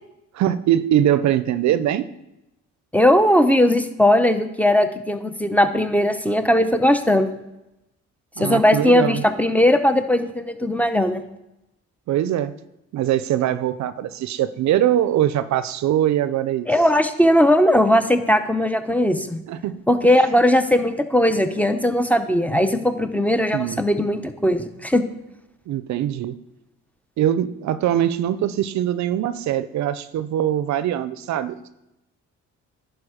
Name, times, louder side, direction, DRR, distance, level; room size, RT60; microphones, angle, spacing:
voice 1, 0.3-2.1 8.4-9.2 12.1-12.5 12.9-16.7 19.5-19.8 23.5-23.8 25.7-26.4 27.2-31.7, right 11 dB, 65° right, 14 dB, 0.5 m, -22 dB
voice 2, 2.9-7.3 8.4-11.2 16.7-19.4 19.9-25.0, left 1 dB, 5° left, 9 dB, 0.7 m, -18 dB
11.0 x 4.6 x 5.0 m, 0.91 s
cardioid pair, 90°, 30 cm